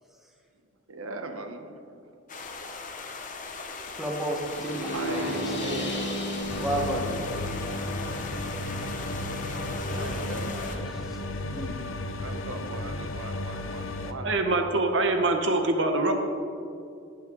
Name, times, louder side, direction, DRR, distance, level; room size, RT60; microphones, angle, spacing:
voice 1, 0.9-1.8 2.4-2.6 4.9-6.0 8.1-8.4 9.4-10.9 12.1-14.9, right 2 dB, 85° right, 6 dB, 1.1 m, -40 dB
sound 1, 2.3-10.8, left 4 dB, 35° left, 0.9 m, -39 dB
voice 2, 3.9-6.1 6.6-7.1 9.8-11.2 11.5-11.8, right 1 dB, ahead, -2 dB, 1.5 m, -34 dB
sound 2, 4.5-10.4, equal, 55° left, 2.0 m, -35 dB
sound 3, 6.5-14.1, left 2 dB, 70° left, 0.8 m, -34 dB
voice 3, 14.2-16.1, right 2 dB, 60° right, 4 dB, 1.0 m, -24 dB
18.0 x 8.7 x 3.9 m, 2.4 s
head